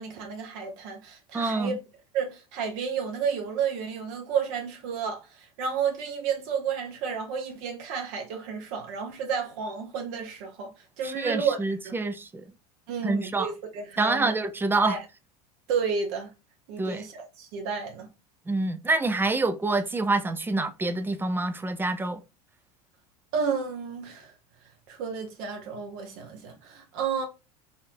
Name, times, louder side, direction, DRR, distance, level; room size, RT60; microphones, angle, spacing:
voice 1, 0.0-1.7 2.1-10.7 11.0-11.6 11.8-12.0 12.9-14.3 14.8-15.0 15.7-16.3 16.7-18.1 23.3-24.3 24.9-27.2, right 6 dB, 60° right, 0.9 m, -31 dB
voice 2, 1.3-1.8 11.0-12.4 13.0-13.5 14.0-15.0 16.8-17.0 18.5-22.2, right 2 dB, 10° right, 0.4 m, -27 dB
4.1 x 2.6 x 2.6 m
hypercardioid pair, 80°, 20 cm